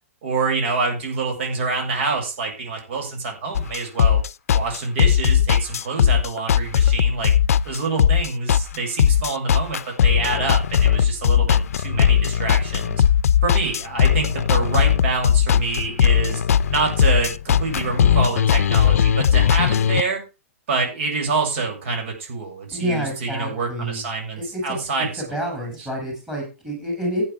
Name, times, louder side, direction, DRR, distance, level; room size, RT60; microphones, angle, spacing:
voice 1, 0.2-4.2 4.5-7.3 7.6-13.0 13.4-16.4 16.7-20.2 20.7-25.9, right 4 dB, 50° right, 3 dB, 7.3 m, -26 dB
sound 1, 3.5-20.0, left 9 dB, 75° left, 0.6 m, -18 dB
voice 2, 22.7-24.0 24.4-24.8 25.2-27.2, equal, 5° right, 2 dB, 7.5 m, -28 dB
16.0 x 9.1 x 3.6 m, 0.30 s
hypercardioid pair, 160°, 8 cm